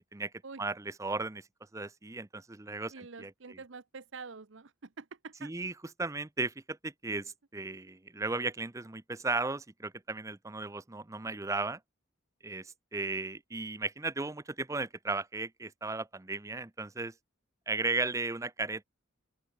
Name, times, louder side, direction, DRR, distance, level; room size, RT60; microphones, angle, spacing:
voice 1, 0.6-1.4 1.7-2.9 3.2-3.3 5.4-5.7 6.0-11.8 12.4-17.1 17.7-18.8, right 3 dB, 15° right, 0.6 m, -35 dB
voice 2, 2.9-5.5, right 4 dB, 60° right, 0.8 m, -46 dB
open air
head